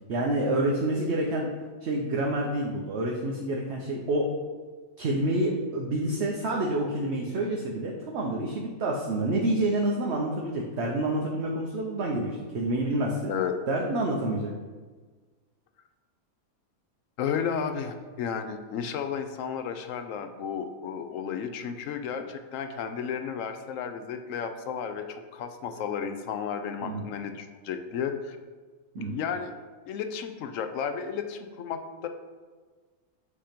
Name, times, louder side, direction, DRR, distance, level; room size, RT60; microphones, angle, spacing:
voice 1, 0.1-1.5 1.8-4.3 5.0-13.3 13.7-14.5 26.8-27.1 28.9-29.2, right 1 dB, 55° right, -1 dB, 0.9 m, -28 dB
voice 2, 17.2-28.4 29.0-29.5 29.9-32.1, left 7 dB, 70° left, 8 dB, 0.9 m, -33 dB
8.4 x 3.0 x 5.0 m, 1.4 s
omnidirectional pair, 1.5 m